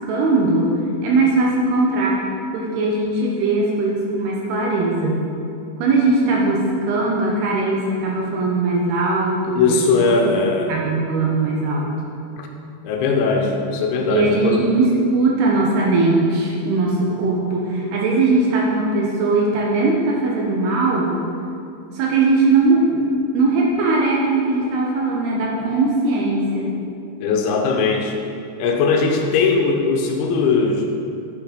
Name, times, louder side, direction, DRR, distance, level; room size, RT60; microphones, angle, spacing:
voice 1, 0.1-2.2 2.5-5.2 5.8-10.4 10.7-11.9 14.1-21.2 21.9-23.1 23.3-26.7, right 3 dB, 75° right, -3 dB, 2.6 m, -20 dB
voice 2, 9.6-10.7 12.4-12.5 12.8-14.7 27.2-28.2 28.6-31.0, left 4 dB, 80° left, 2 dB, 3.1 m, -19 dB
8.5 x 6.4 x 5.1 m, 2.6 s
omnidirectional pair, 5.3 m